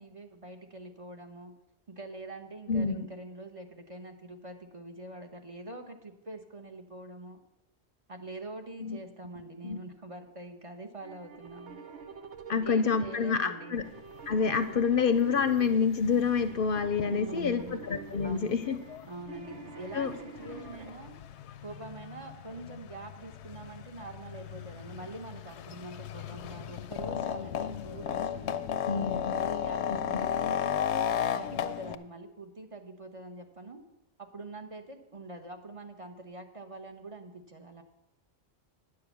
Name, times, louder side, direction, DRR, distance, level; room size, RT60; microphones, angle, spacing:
voice 1, 0.0-1.5 1.9-7.4 8.1-11.8 12.6-13.8 17.1-17.8 18.2-18.6 19.0-21.2 21.6-28.7 29.3-30.7 31.1-33.8 34.2-37.8, right 2 dB, 35° right, 4 dB, 0.9 m, -44 dB
sound 1, 11.0-20.9, right 5 dB, 90° right, 1.2 m, -46 dB
voice 2, 12.5-13.8 14.3-18.8 19.9-20.1 28.9-29.3 29.9-30.2, left 6 dB, 60° left, 10 dB, 0.7 m, -27 dB
sound 2, 13.9-14.0 14.3-32.0, left 9 dB, 85° left, 0.9 m, -36 dB
9.8 x 6.6 x 7.0 m, 0.89 s
omnidirectional pair, 1.1 m